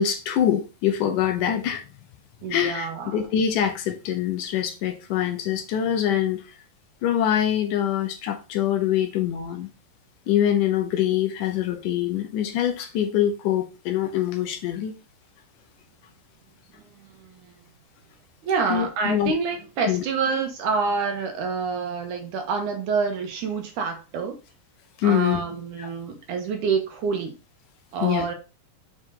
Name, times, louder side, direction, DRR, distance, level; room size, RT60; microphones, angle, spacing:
voice 1, 0.0-1.8 2.5-6.6 7.0-9.7 10.3-14.9 18.7-19.3 19.9-20.0 25.0-25.4 25.8-25.9 28.0-28.3, left 10 dB, 70° left, 2.3 m, -24 dB
voice 2, 2.4-3.2 16.7-17.6 18.4-24.4 25.0-27.4 27.9-28.3, right 5 dB, 70° right, 2.4 m, -27 dB
6.6 x 5.2 x 3.8 m
omnidirectional pair, 4.0 m